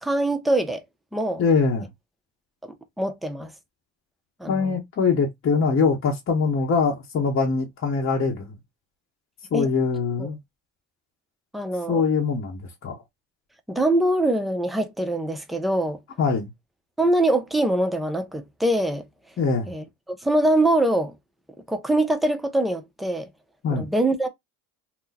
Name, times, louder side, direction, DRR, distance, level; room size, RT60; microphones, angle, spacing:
voice 1, 0.0-0.8 1.1-1.4 3.0-3.5 4.4-4.8 9.5-9.7 10.2-10.3 11.5-12.0 13.7-16.0 17.0-19.1 19.7-21.1 21.7-23.3 23.7-24.3, right 1 dB, ahead, 0.5 m, -23 dB
voice 2, 1.4-1.9 4.5-8.5 9.5-10.4 11.9-13.0 16.2-16.5 19.4-19.7 23.6-23.9, left 5 dB, 35° left, 0.9 m, -23 dB
2.7 x 2.1 x 3.9 m
supercardioid pair, 105°, 39 cm